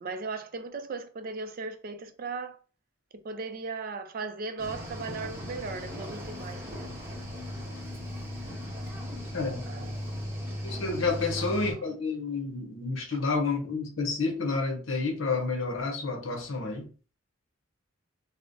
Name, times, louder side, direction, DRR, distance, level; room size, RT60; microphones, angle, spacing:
voice 1, 0.0-2.6 3.2-7.0 9.7-9.9 11.4-11.5 11.8-11.9, right 4 dB, 45° right, 0.4 m, -37 dB
Cricket / Waves surf, 4.6-11.7, equal, 10° right, 0.8 m, -37 dB
voice 2, 9.3-9.7 10.6-16.9, left 3 dB, 70° left, 0.8 m, -30 dB
4.8 x 2.1 x 2.5 m
head